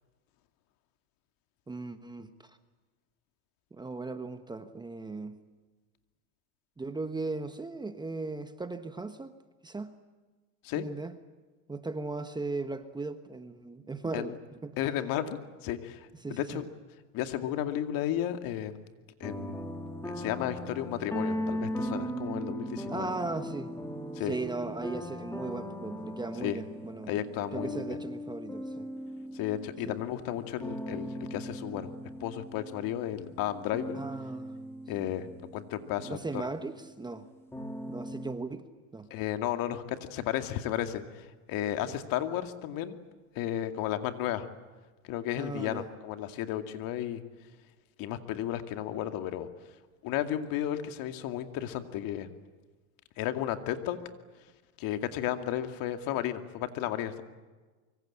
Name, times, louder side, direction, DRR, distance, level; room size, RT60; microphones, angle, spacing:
voice 1, 1.7-2.6 3.7-5.4 6.8-9.4 9.6-9.9 10.8-11.2 11.7-14.8 16.2-16.6 22.9-23.7 24.2-27.1 27.5-28.9 29.9-30.0 33.9-34.5 36.0-37.3 37.9-38.7 38.9-39.1 45.4-45.9, right 3 dB, 10° right, 9 dB, 1.2 m, -37 dB
voice 2, 14.8-16.6 17.1-18.8 19.2-19.6 20.0-23.1 24.1-24.3 26.4-26.6 27.1-28.0 29.3-34.0 34.9-35.3 35.5-36.2 39.1-43.0 43.4-44.5 45.1-47.2 48.0-49.5 50.0-52.3 53.2-54.0 54.8-57.2, left 11 dB, 50° left, 7 dB, 2.4 m, -33 dB
sound 1, 19.2-37.1 37.5-38.3, equal, 5° left, 3.9 m, -39 dB
25.0 x 24.0 x 8.7 m, 1.3 s
supercardioid pair, 125°, 42 cm